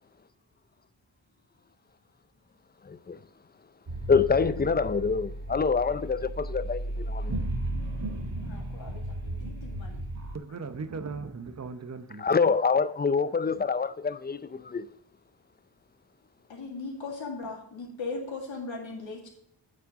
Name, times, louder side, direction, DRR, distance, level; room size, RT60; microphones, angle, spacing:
voice 1, 2.9-3.2 4.1-7.3 12.2-14.9, left 5 dB, 20° left, 0.4 m, -26 dB
sound 1, 3.9-10.4, right 1 dB, 85° right, 2.2 m, -34 dB
voice 2, 8.4-10.0 16.5-19.3, left 3 dB, 80° left, 2.2 m, -38 dB
voice 3, 10.3-12.5, right 4 dB, 35° right, 0.8 m, -38 dB
8.8 x 7.5 x 3.7 m
wide cardioid pair, 60°, 45 cm